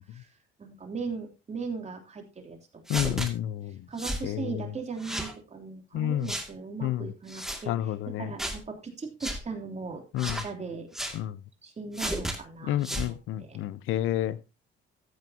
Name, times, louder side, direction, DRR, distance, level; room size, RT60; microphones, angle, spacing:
voice 1, 0.6-2.6 3.9-10.9 11.6-13.6, right 4 dB, 35° right, 3.2 m, -38 dB
voice 2, 2.9-3.8 4.2-4.5 5.9-6.3 6.8-7.1 7.7-8.3 10.1-10.4 11.1-11.4 12.6-14.4, left 12 dB, 90° left, 0.6 m, -29 dB
sound 1, 2.9-3.3 4.0-4.3 5.0-5.3 6.3-6.5 7.3-7.6 8.4-8.6 9.2-9.4 10.2-10.5 10.9-11.2 11.9-12.4 12.8-13.1, right 1 dB, ahead, 2.3 m, -33 dB
14.0 x 9.0 x 2.9 m
cardioid pair, 90°, 20 cm